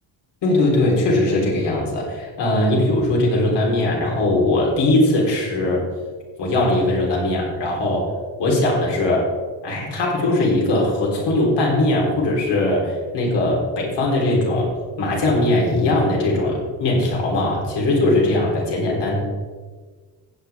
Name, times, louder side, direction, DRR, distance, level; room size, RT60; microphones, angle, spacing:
voice 1, 0.4-5.8 6.4-8.1 8.4-9.3 9.6-14.7 15.0-19.2, left 2 dB, 70° left, -2 dB, 3.9 m, -20 dB
15.5 x 8.3 x 3.6 m, 1.4 s
cardioid pair, 155°, 43 cm